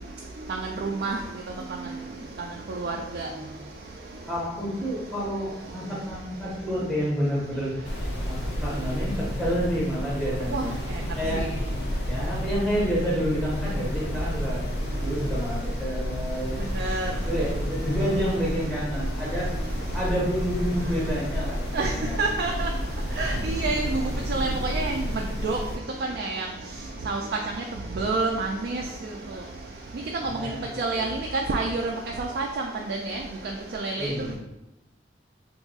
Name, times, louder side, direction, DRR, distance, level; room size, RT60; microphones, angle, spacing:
voice 1, 0.5-1.2 2.7-3.3 10.5-10.6 11.3-11.5 16.7-17.1 21.7-21.9 22.2-22.7 23.2-25.6 26.2-26.5 27.1-27.2 27.6-27.7 28.0-28.8 30.3-32.5 32.9-33.2 33.7-34.1, right 3 dB, 55° right, 1 dB, 0.3 m, -28 dB
voice 2, 4.3-7.8 8.3-10.8 11.2-11.4 12.0-16.7 17.2-19.5 19.9-22.4 30.2-30.6 30.9-31.1 34.0-34.4, equal, ahead, -7 dB, 0.6 m, -29 dB
sound 1, 7.5-13.2, right 1 dB, 85° right, 0.6 m, -48 dB
sound 2, 7.8-25.8, equal, 65° left, 0.5 m, -31 dB
2.7 x 2.4 x 3.9 m, 0.96 s
head